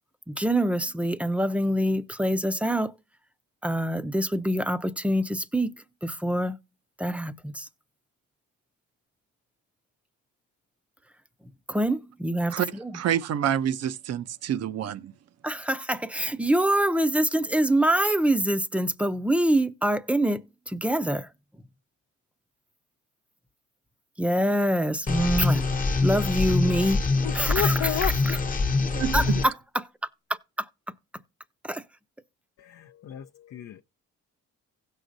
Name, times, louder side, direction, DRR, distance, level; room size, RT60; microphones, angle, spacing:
voice 1, 0.3-2.9 3.6-5.7 6.0-6.6 7.0-7.7 11.7-13.0 15.4-21.3 24.2-25.6 26.0-27.0 27.3-28.1 29.1-29.2 30.6-30.7 31.6-31.8, right 1 dB, 5° right, 0.6 m, -25 dB
voice 2, 12.9-15.1 28.9-29.4, right 10 dB, 55° right, 0.6 m, -28 dB
sound 1, 25.1-29.5, left 3 dB, 25° left, 0.9 m, -25 dB
voice 3, 27.2-28.4 32.6-33.8, left 11 dB, 60° left, 0.5 m, -32 dB
16.5 x 6.4 x 2.6 m
cardioid pair, 90°, 30 cm